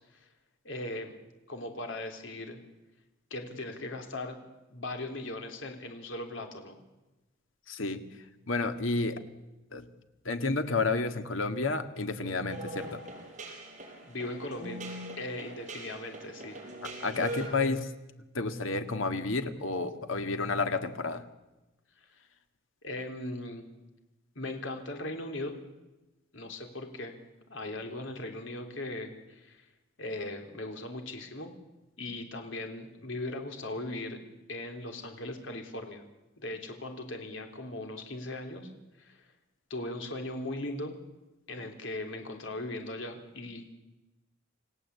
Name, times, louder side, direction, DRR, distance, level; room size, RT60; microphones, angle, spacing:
voice 1, 0.6-1.2 1.5-2.6 3.3-4.4 4.7-6.8 14.0-14.8 15.2-16.6 22.0-22.1 22.8-23.7 24.4-25.6 26.3-27.1 27.5-29.6 30.0-31.5 32.0-34.2 34.5-36.0 36.4-38.7 39.0-39.2 39.7-41.0 41.5-43.7, left 2 dB, 70° left, 4 dB, 3.7 m, -38 dB
voice 2, 7.7-8.0 8.5-9.2 9.7-9.8 10.3-13.0 16.8-17.9 18.3-21.2, left 3 dB, 90° left, 8 dB, 2.0 m, -30 dB
sound 1, 12.5-17.5, right 2 dB, 40° right, 5.3 m, -41 dB
29.0 x 17.0 x 8.4 m, 1.0 s
head